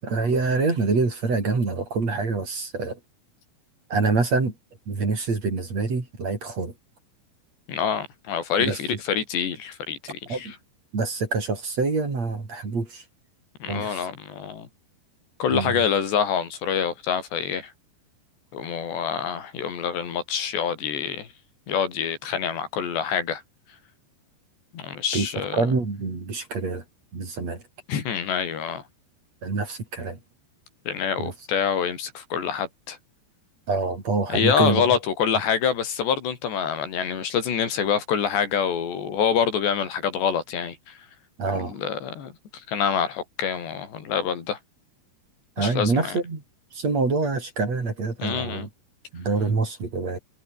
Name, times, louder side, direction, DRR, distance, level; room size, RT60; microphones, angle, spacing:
voice 1, 0.0-3.0 3.9-4.5 4.9-6.7 8.6-8.8 10.3-10.5 10.9-13.0 13.7-14.0 15.5-15.8 25.1-25.3 25.5-26.8 27.1-27.6 29.4-30.2 31.2-31.3 33.7-34.8 41.4-41.7 45.6-46.4 46.7-48.7 49.1-50.2, right 3 dB, 35° right, 6.1 m, -26 dB
voice 2, 7.7-10.6 13.6-14.7 15.4-17.7 18.5-21.3 21.7-23.4 24.7-25.6 27.9-28.8 30.9-33.0 34.3-41.0 41.6-44.6 45.6-46.2 48.2-48.7, left 7 dB, 75° left, 5.7 m, -26 dB
omnidirectional pair, 5.1 m